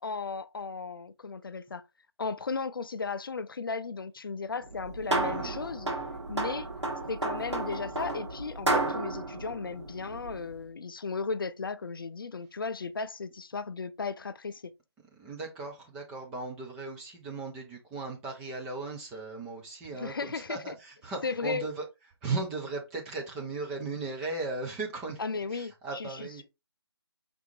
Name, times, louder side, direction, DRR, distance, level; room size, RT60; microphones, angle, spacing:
voice 1, 0.0-1.8 2.2-6.0 6.3-6.7 7.1-14.7 19.9-20.7 21.2-21.6 25.2-26.4, left 4 dB, 55° left, 0.4 m, -35 dB
sound 1, 4.6-10.5, right 2 dB, 85° right, 1.6 m, -32 dB
voice 2, 5.0-5.6 15.2-21.8 22.2-25.2 25.5-26.4, right 3 dB, 5° right, 0.5 m, -37 dB
5.0 x 3.5 x 2.7 m
figure-of-eight pair, 150°, 14 cm